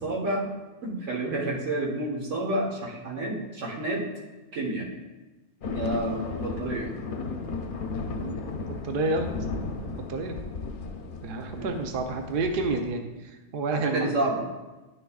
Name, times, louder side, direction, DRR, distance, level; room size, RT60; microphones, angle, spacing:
voice 1, 0.0-0.5 0.8-4.0 4.5-4.9 5.6-6.9 11.5-11.7 13.7-14.4, right 1 dB, 85° right, -2 dB, 1.7 m, -29 dB
sound 1, 5.6-12.9, left 4 dB, 55° left, 0.7 m, -35 dB
voice 2, 8.2-9.3 10.1-10.3 11.2-14.1, right 3 dB, 55° right, 5 dB, 0.8 m, -30 dB
11.0 x 6.5 x 2.4 m, 1.1 s
omnidirectional pair, 1.3 m